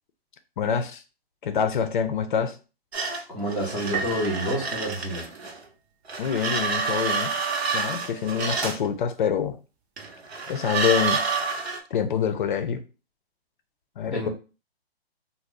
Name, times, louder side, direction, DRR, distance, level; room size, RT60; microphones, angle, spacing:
voice 1, 0.6-1.0 1.4-2.6 6.2-7.3 7.7-9.6 10.5-11.2 11.9-12.8 14.0-14.3, left 7 dB, 50° left, 0.5 m, -26 dB
sound 1, 2.9-5.6 6.1-8.9 10.0-11.8, right 4 dB, 85° right, 0.8 m, -29 dB
voice 2, 3.3-5.2 14.1-14.3, equal, 5° right, 0.4 m, -28 dB
Piano, 3.9-5.8, right 5 dB, 40° right, 0.7 m, -35 dB
2.8 x 2.0 x 3.6 m
hypercardioid pair, 135°, 31 cm